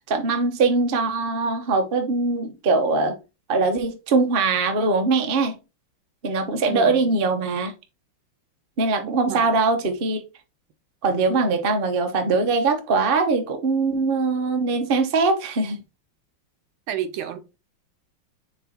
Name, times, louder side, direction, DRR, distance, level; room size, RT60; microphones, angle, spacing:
voice 1, 0.1-3.1 3.5-5.6 6.2-7.7 8.8-10.2 11.0-15.8, right 3 dB, 45° right, 0.7 m, -22 dB
voice 2, 6.7-7.2 9.3-9.6 16.9-17.4, right 10 dB, 70° right, 1.5 m, -31 dB
6.8 x 3.2 x 4.4 m
omnidirectional pair, 2.4 m